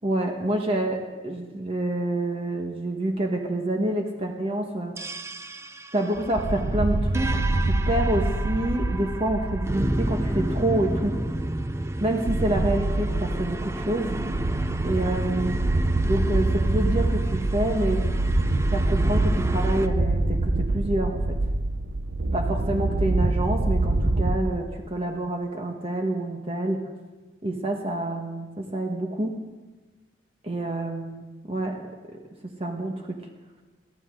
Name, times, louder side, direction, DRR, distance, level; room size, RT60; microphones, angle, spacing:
voice 1, 0.0-5.0 5.9-7.4 7.7-11.2 12.0-14.2 14.8-15.6 16.0-18.0 18.7-21.4 22.3-26.8 27.4-29.3 30.4-31.8 32.6-33.2, right 1 dB, 30° right, 2 dB, 1.4 m, -27 dB
sound 1, 5.0-19.9, right 1 dB, 15° right, 0.5 m, -33 dB
sound 2, 6.2-24.4, right 2 dB, 70° right, 0.9 m, -25 dB
22.0 x 15.0 x 3.8 m, 1.2 s
head